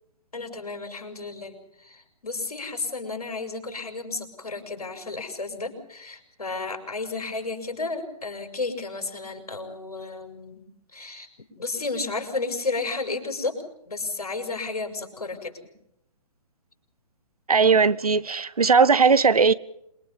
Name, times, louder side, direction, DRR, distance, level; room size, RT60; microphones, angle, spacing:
voice 1, 0.3-10.6 10.9-13.6 13.9-15.5, left 3 dB, 70° left, 6.2 m, -32 dB
voice 2, 17.5-19.5, right 5 dB, 70° right, 1.0 m, -18 dB
27.5 x 23.0 x 5.5 m
figure-of-eight pair, 130°, 20 cm